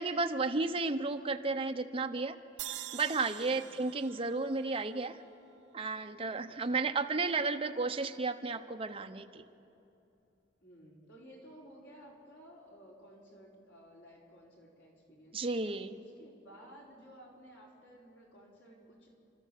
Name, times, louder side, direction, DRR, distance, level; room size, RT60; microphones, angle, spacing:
voice 1, 0.0-2.4 2.9-5.2 5.7-9.4 15.3-15.9, right 3 dB, 30° right, 7 dB, 0.8 m, -33 dB
sound 1, 2.6-5.9, right 13 dB, 70° right, 0.5 m, -46 dB
voice 2, 3.5-3.9 6.5-6.8 10.6-15.6 15.9-19.1, equal, 80° left, -2 dB, 4.4 m, -56 dB
29.5 x 13.0 x 7.5 m, 2.8 s
head